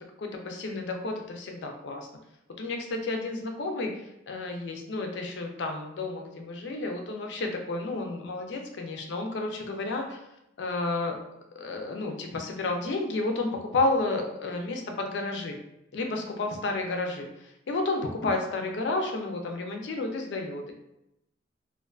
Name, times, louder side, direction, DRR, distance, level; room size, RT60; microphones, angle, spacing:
voice 1, 0.2-2.1 2.6-3.9 4.3-10.2 10.6-11.2 11.6-15.6 15.9-20.7, left 2 dB, 70° left, 3 dB, 0.4 m, -31 dB
2.4 x 2.3 x 2.3 m, 0.84 s
head